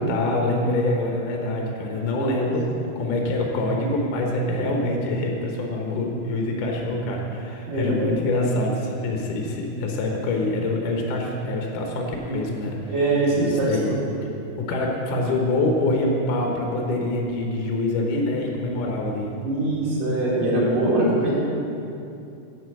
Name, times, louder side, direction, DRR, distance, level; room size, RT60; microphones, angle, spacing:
voice 1, 0.0-12.9 13.4-13.9 14.6-19.3, left 2 dB, 80° left, 0 dB, 2.5 m, -25 dB
voice 2, 2.1-2.5 4.5-4.6 7.7-8.2 12.9-14.0 19.4-21.3, right 2 dB, 85° right, -7 dB, 4.0 m, -23 dB
9.5 x 5.3 x 8.0 m, 2.7 s
omnidirectional pair, 3.7 m